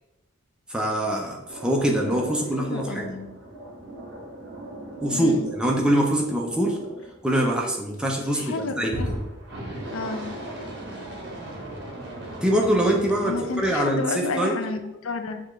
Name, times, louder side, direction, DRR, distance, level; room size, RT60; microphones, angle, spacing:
voice 1, 0.7-3.1 5.0-6.8 7.2-9.0 12.4-14.6, right 1 dB, 5° right, -1 dB, 0.5 m, -24 dB
sound 1, 1.5-7.8 8.9-13.8, right 1 dB, 55° right, 1.0 m, -38 dB
voice 2, 2.6-3.3 5.1-5.5 8.3-9.1 9.9-10.3 13.2-15.4, left 3 dB, 75° left, 7 dB, 0.5 m, -31 dB
6.6 x 2.5 x 3.1 m, 0.97 s
head